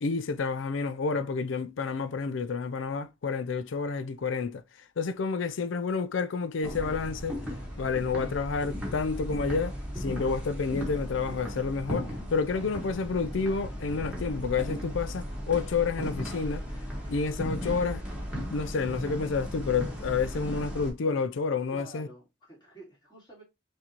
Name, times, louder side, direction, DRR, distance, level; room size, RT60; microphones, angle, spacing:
voice 1, 0.0-4.6 5.0-7.4 7.8-16.7 17.1-18.0 18.5-22.1, left 5 dB, 90° left, 0.5 m, -29 dB
sound 1, 6.6-20.9, equal, 5° right, 1.4 m, -36 dB
voice 2, 21.7-23.4, right 1 dB, 25° left, 2.8 m, -49 dB
5.9 x 2.7 x 2.9 m
head